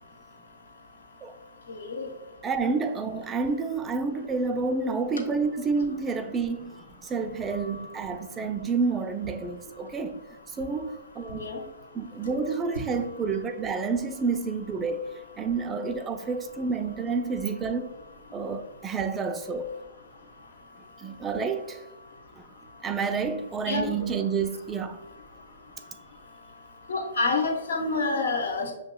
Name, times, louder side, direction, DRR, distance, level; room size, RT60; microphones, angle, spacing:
voice 1, 1.7-2.1 11.3-11.6 23.7-23.9 26.9-28.7, left 3 dB, 80° left, 1.0 m, -27 dB
voice 2, 2.4-10.2 10.5-11.5 11.9-17.9 18.3-19.8 21.0-21.9 22.4-22.5 22.8-25.0, right 4 dB, 20° right, 0.3 m, -29 dB
6.0 x 2.9 x 2.2 m
hypercardioid pair, 130°, 0 cm